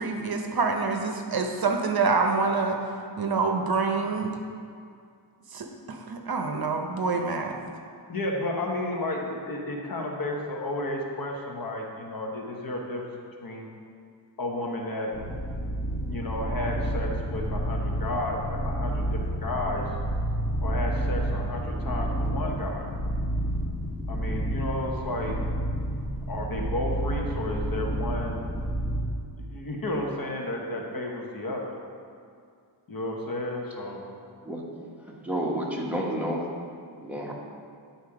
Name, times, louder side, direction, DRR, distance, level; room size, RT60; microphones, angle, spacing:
voice 1, 0.0-2.8 3.2-4.4 5.5-7.6, right 4 dB, 55° right, 3 dB, 0.8 m, -26 dB
voice 2, 8.1-13.0 13.4-13.7 14.4-15.1 16.1-19.9 20.6-22.9 24.1-25.4 26.3-28.5 29.5-31.8 32.9-34.0 35.6-35.8 36.4-36.5, left 1 dB, 50° left, 0 dB, 1.1 m, -32 dB
sound 1, 15.1-29.0, right 1 dB, 20° left, 1.2 m, -30 dB
voice 3, 35.0-36.5 37.0-37.3, right 1 dB, 5° right, -3 dB, 1.2 m, -30 dB
10.0 x 4.2 x 4.9 m, 2.3 s
wide cardioid pair, 120°, 43 cm